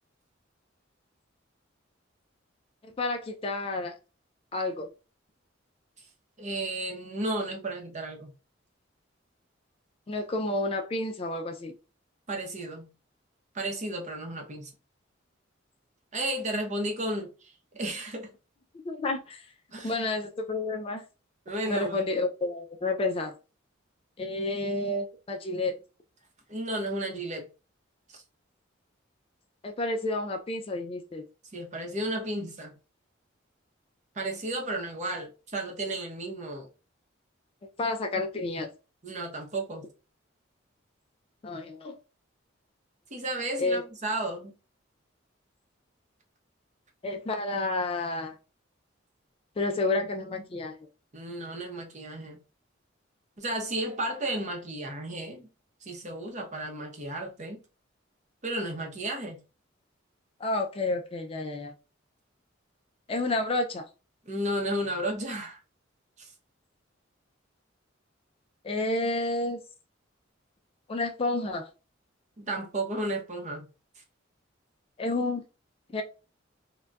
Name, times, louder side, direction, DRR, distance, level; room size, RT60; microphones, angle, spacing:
voice 1, 2.8-4.0 4.5-4.9 10.1-11.7 18.8-19.5 19.8-21.0 21.7-23.3 24.2-25.8 29.6-31.2 37.8-38.7 41.4-42.0 43.6-43.8 47.0-48.4 49.6-50.8 60.4-61.7 63.1-63.8 68.6-69.6 70.9-71.7 75.0-75.4 75.9-76.0, left 2 dB, 30° left, 0.3 m, -30 dB
voice 2, 6.4-8.3 12.3-12.9 13.5-14.7 16.1-18.3 19.7-19.9 21.5-22.1 26.5-27.5 28.1-28.2 31.5-32.7 34.1-36.7 39.0-39.8 43.1-44.5 51.1-52.4 53.4-55.5 55.8-57.6 58.4-59.4 64.3-65.6 66.2-66.3 72.4-73.6, right 1 dB, 35° right, 0.7 m, -33 dB
3.8 x 2.1 x 2.2 m
head